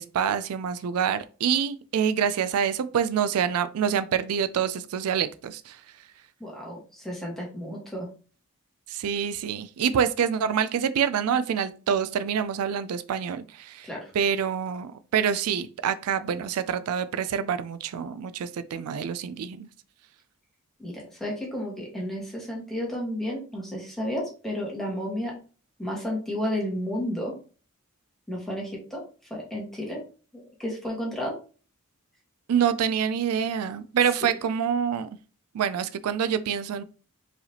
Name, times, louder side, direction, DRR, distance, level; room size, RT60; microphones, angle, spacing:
voice 1, 0.0-5.8 8.9-13.9 14.1-19.7 32.5-35.1 35.5-36.8, right 7 dB, 90° right, 0.4 m, -26 dB
voice 2, 6.4-8.1 13.8-14.0 20.8-25.3 25.8-27.3 28.3-29.0 29.3-30.0 30.3-31.4, equal, ahead, 1.5 m, -32 dB
4.6 x 3.4 x 2.8 m
head